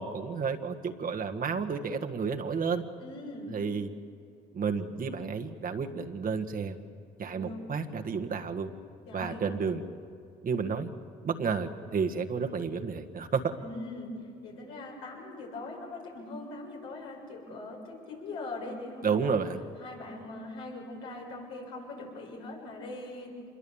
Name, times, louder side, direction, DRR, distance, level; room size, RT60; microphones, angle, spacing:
voice 1, 0.0-2.8 3.5-3.9 4.5-6.7 7.2-8.7 9.1-9.8 10.4-10.9 11.2-13.5 19.0-19.6, right 5 dB, 45° right, 4 dB, 1.6 m, -31 dB
voice 2, 3.0-3.6 7.3-7.7 9.1-9.4 13.6-14.1 14.4-19.3 19.8-23.3, left 2 dB, 80° left, -1 dB, 6.8 m, -41 dB
26.0 x 22.0 x 7.2 m, 2.4 s
supercardioid pair, 75°, 21 cm